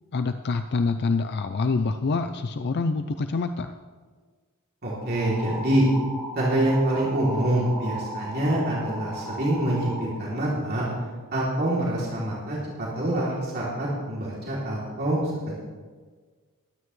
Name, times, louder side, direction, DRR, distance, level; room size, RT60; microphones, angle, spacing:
voice 1, 0.1-3.7, left 4 dB, 50° left, 9 dB, 0.5 m, -26 dB
voice 2, 4.8-5.9 6.3-9.9 10.2-10.9 11.3-12.6 12.9-15.2 15.5-15.6, right 1 dB, 50° right, -6 dB, 3.0 m, -25 dB
sound 1, 5.0-10.0, right 2 dB, ahead, 3.7 m, -36 dB
22.0 x 9.7 x 3.2 m, 1.5 s
head